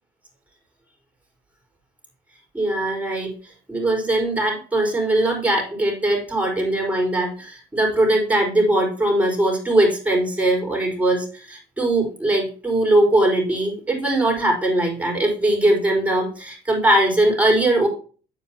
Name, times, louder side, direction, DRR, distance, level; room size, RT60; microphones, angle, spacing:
voice 1, 2.5-3.3 3.7-17.9, right 1 dB, 10° right, -1 dB, 4.7 m, -20 dB
9.5 x 8.4 x 2.9 m, 0.38 s
cardioid pair, 110°, 17 cm